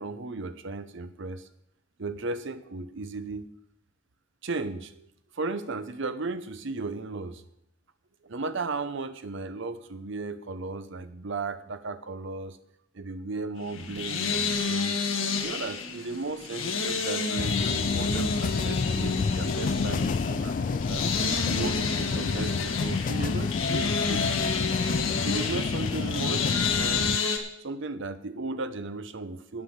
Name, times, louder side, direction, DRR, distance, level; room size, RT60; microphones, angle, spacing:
voice 1, 0.0-1.5 2.0-3.5 4.4-5.1 5.3-7.4 8.2-12.6 12.9-14.9 15.4-21.0 21.5-24.3 25.2-27.2 27.6-29.6, right 3 dB, 65° right, 12 dB, 0.8 m, -35 dB
sound 1, 13.6-27.4, left 4 dB, 80° left, 1.6 m, -30 dB
sound 2, 17.4-27.2, left 4 dB, 40° left, 0.3 m, -29 dB
9.8 x 8.8 x 7.2 m, 0.76 s
head